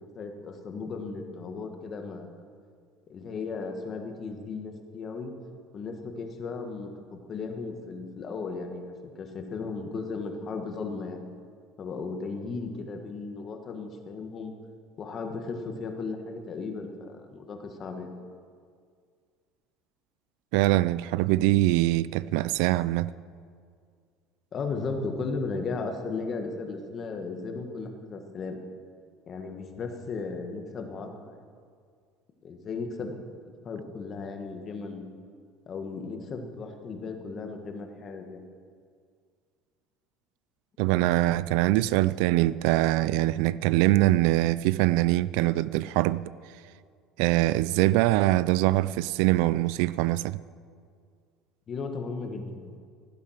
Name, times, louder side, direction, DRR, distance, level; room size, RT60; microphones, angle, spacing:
voice 1, 0.1-2.3 3.1-5.3 5.7-11.2 11.8-14.5 15.0-18.1 24.5-28.6 29.3-31.3 32.4-33.2 33.4-35.0 35.7-38.4 51.7-52.8, left 4 dB, 25° left, 1.4 m, -36 dB
voice 2, 20.5-23.1 40.8-46.2 47.2-50.4, right 17 dB, 70° right, 0.3 m, -23 dB
16.5 x 12.0 x 5.8 m
cardioid pair, 175°, 0 cm